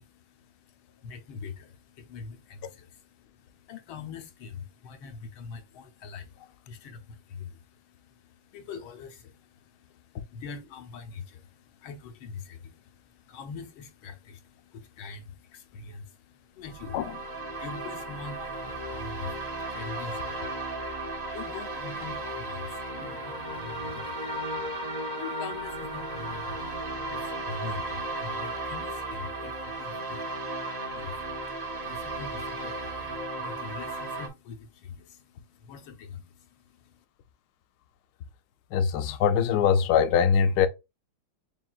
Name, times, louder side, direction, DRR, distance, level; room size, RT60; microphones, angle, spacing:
voice 1, 0.0-17.0 17.5-37.0, left 5 dB, 90° left, 1.6 m, -44 dB
sound 1, 16.6-34.3, right 2 dB, 45° right, 0.5 m, -35 dB
voice 2, 38.7-40.7, left 7 dB, 70° left, 1.0 m, -22 dB
7.3 x 2.5 x 2.3 m
omnidirectional pair, 2.2 m